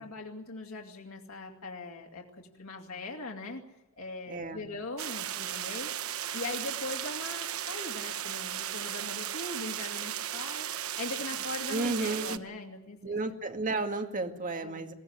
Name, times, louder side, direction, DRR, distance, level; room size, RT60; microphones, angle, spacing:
voice 1, 0.0-3.6 4.0-5.9 6.3-10.7 11.0-13.2 14.6-14.9, left 2 dB, 85° left, 1 dB, 2.7 m, -40 dB
voice 2, 4.3-4.6 11.7-12.4 13.0-14.9, right 3 dB, 40° right, 5 dB, 2.2 m, -32 dB
sound 1, 5.0-12.4, right 10 dB, 85° right, 1.0 m, -36 dB
22.0 x 16.5 x 9.7 m, 0.92 s
head